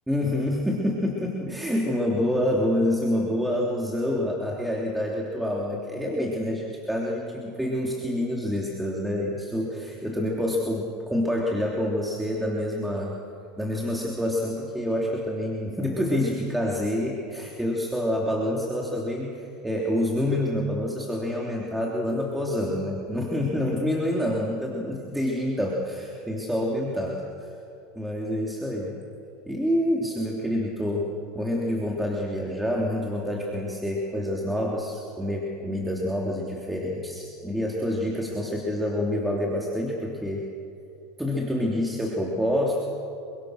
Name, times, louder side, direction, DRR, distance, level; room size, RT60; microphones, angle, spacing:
voice 1, 0.1-13.2 13.6-27.5 27.9-29.0 29.5-40.4 41.2-42.8, left 1 dB, 5° right, -2 dB, 3.2 m, -27 dB
27.5 x 24.5 x 6.6 m, 2.6 s
supercardioid pair, 110°, 0 cm